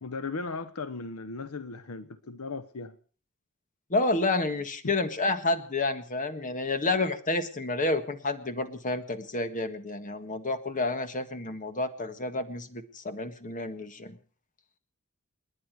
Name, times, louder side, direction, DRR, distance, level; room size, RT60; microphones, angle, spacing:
voice 1, 0.0-3.0 4.8-4.9, left 3 dB, 70° left, 0.9 m, -37 dB
voice 2, 3.9-14.2, left 2 dB, 35° left, 1.6 m, -30 dB
29.5 x 10.0 x 4.8 m
head